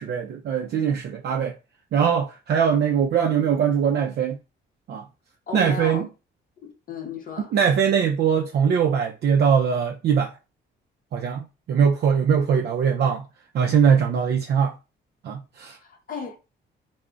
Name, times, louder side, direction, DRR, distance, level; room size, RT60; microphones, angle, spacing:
voice 1, 0.0-1.6 1.9-4.4 4.9-5.0 5.5-6.1 7.5-10.3 11.1-13.2 13.5-14.7 15.2-15.8, right 7 dB, 55° right, 0.4 m, -21 dB
voice 2, 5.5-6.0 6.6-7.5 15.8-16.4, left 5 dB, 45° left, 0.6 m, -35 dB
2.3 x 2.0 x 3.6 m
cardioid pair, 90°, 20 cm